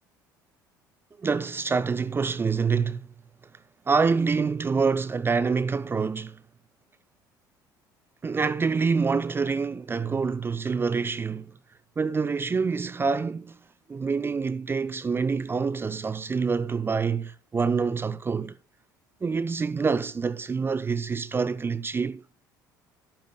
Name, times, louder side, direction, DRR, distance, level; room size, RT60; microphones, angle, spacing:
voice 1, 1.2-3.0 3.9-6.4 8.2-11.5 12.0-13.6 13.9-18.6 19.2-22.2, right 5 dB, 20° right, 0.5 m, -26 dB
14.5 x 10.5 x 2.2 m
figure-of-eight pair, 60°, 10 cm